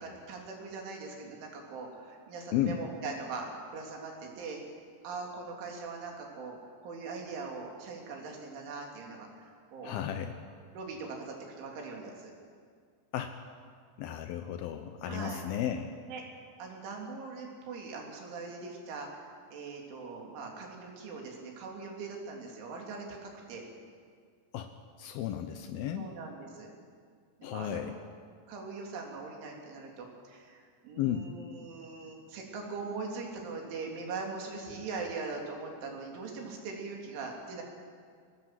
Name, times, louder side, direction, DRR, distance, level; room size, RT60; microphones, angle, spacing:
voice 1, 0.0-4.6 5.0-10.0 10.7-12.3 15.0-15.4 16.1-16.2 16.6-19.1 19.5-23.7 25.9-26.7 27.4-27.9 28.5-37.6, right 4 dB, 75° right, 0 dB, 5.6 m, -41 dB
voice 2, 9.8-10.4 13.1-13.4 14.0-15.9 24.5-24.7 25.0-26.1 27.4-28.0 31.0-31.3, left 10 dB, 85° left, 7 dB, 2.1 m, -33 dB
24.0 x 19.0 x 7.7 m, 2.1 s
omnidirectional pair, 5.6 m